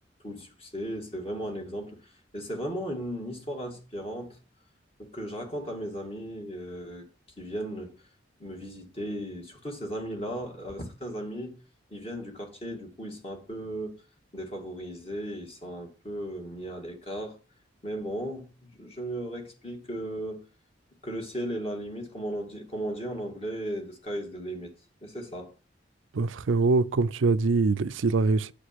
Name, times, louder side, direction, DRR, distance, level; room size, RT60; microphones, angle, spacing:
voice 1, 0.2-4.4 5.0-7.1 7.4-7.9 8.4-11.6 11.9-14.0 14.3-17.4 17.8-20.4 21.0-24.7 25.0-25.5, right 1 dB, 30° left, 2.2 m, -36 dB
voice 2, 26.1-28.5, right 3 dB, 85° right, 0.5 m, -24 dB
8.7 x 5.0 x 5.9 m
head